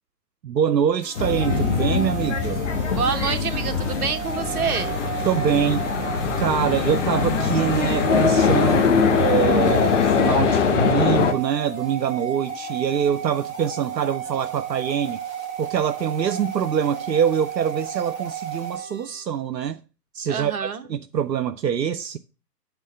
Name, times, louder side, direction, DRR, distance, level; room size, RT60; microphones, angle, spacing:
voice 1, 0.4-2.7 5.3-5.8 6.4-15.2 15.6-19.8 20.1-22.2, right 8 dB, 85° right, 0.6 m, -24 dB
sound 1, 1.0-19.2, right 7 dB, 15° right, 1.1 m, -33 dB
sound 2, 1.2-11.3, left 5 dB, 45° left, 1.3 m, -22 dB
voice 2, 3.0-5.0 20.3-20.9, right 6 dB, 60° right, 1.1 m, -27 dB
8.2 x 3.8 x 6.6 m
figure-of-eight pair, 135°, 49 cm